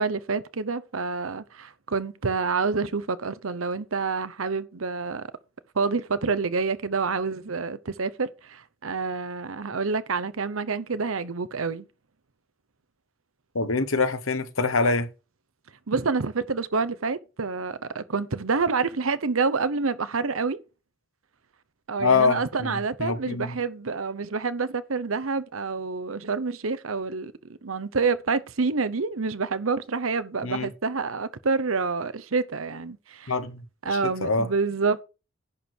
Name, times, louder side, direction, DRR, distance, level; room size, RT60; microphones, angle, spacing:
voice 1, 0.0-5.3 5.7-11.9 15.9-20.6 21.9-27.3 27.6-33.3 33.8-35.0, right 4 dB, 90° right, 0.9 m, -28 dB
voice 2, 13.5-15.1 22.0-23.6 30.4-30.7 33.3-33.6 33.9-34.5, left 4 dB, 90° left, 1.4 m, -25 dB
11.0 x 4.6 x 6.5 m
head